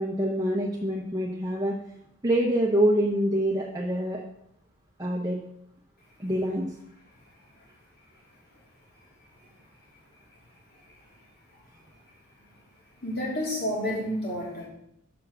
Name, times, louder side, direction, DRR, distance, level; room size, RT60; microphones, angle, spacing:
voice 1, 0.0-1.7 2.2-4.2 5.0-5.4 6.2-6.7, right 1 dB, 15° right, -2 dB, 1.0 m, -25 dB
voice 2, 10.7-11.2 11.5-11.6 13.0-14.7, left 1 dB, 45° left, -5 dB, 3.6 m, -31 dB
7.4 x 6.0 x 6.5 m, 0.78 s
head